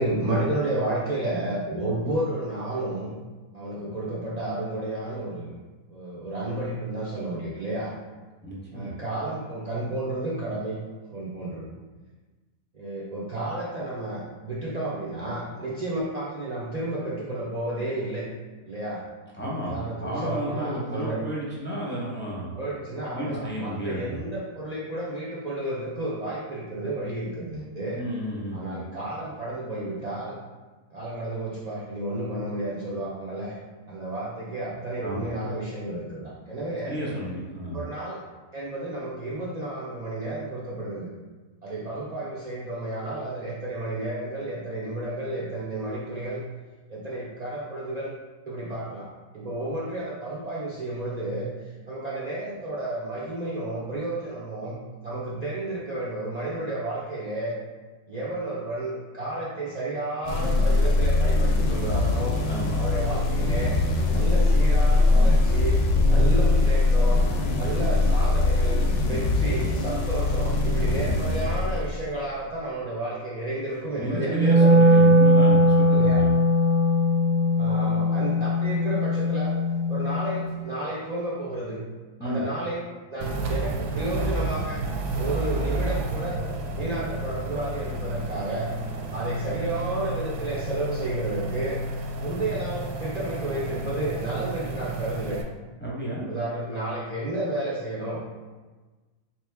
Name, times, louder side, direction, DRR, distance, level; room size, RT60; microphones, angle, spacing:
voice 1, 0.0-3.2 3.5-5.6 5.9-7.9 8.7-10.8 11.1-11.7 12.7-18.3 18.7-19.0 19.7-21.2 22.5-28.0 28.5-30.4 30.9-33.5 33.9-36.9 37.7-38.2 38.5-41.1 41.6-46.4 46.9-48.1 48.5-49.1 49.3-51.5 51.9-54.7 55.0-57.5 58.1-62.4 62.8-63.7 64.1-65.8 66.1-67.2 67.5-74.8 75.9-76.2 77.6-79.5 79.9-81.8 82.2-84.8 85.1-86.4 86.8-88.7 89.1-91.8 92.2-95.4 96.3-98.2, right 1 dB, 70° right, -8 dB, 0.4 m, -31 dB
voice 2, 8.4-9.0 19.4-22.5 23.1-24.2 27.9-28.8 35.0-35.3 36.9-37.8 62.5-62.8 74.0-76.4 82.2-82.4 95.8-96.3, equal, 10° left, -7 dB, 0.7 m, -32 dB
sound 1, 60.2-72.2, left 2 dB, 65° left, 0.7 m, -22 dB
Wind instrument woodwind instrument, 74.3-80.5, equal, 35° right, 0.7 m, -20 dB
sound 2, 83.2-95.4, right 2 dB, 90° right, 1.1 m, -31 dB
3.9 x 2.9 x 3.4 m, 1.3 s
omnidirectional pair, 1.6 m